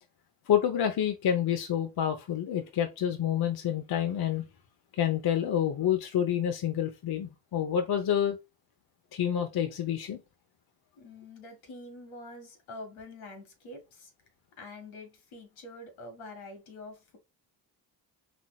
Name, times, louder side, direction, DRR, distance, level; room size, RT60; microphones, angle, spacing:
voice 1, 0.5-4.5 4.9-8.4 9.1-10.2, left 9 dB, 50° left, 0.8 m, -28 dB
voice 2, 10.9-14.1 14.6-17.2, left 2 dB, 75° left, 1.7 m, -46 dB
4.3 x 2.9 x 2.3 m
hypercardioid pair, 50°, 48 cm